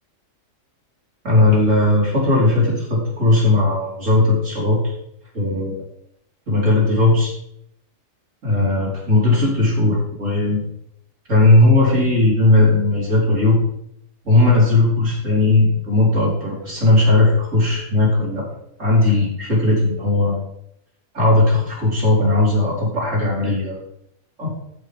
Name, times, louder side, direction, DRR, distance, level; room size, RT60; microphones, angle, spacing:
voice 1, 1.2-4.9 5.3-5.8 6.5-7.3 8.4-10.6 11.3-13.6 14.2-18.5 18.8-20.4 21.1-23.8 24.4-24.5, left 2 dB, 75° right, -5 dB, 4.9 m, -17 dB
13.5 x 6.2 x 5.3 m, 0.75 s
omnidirectional pair, 1.3 m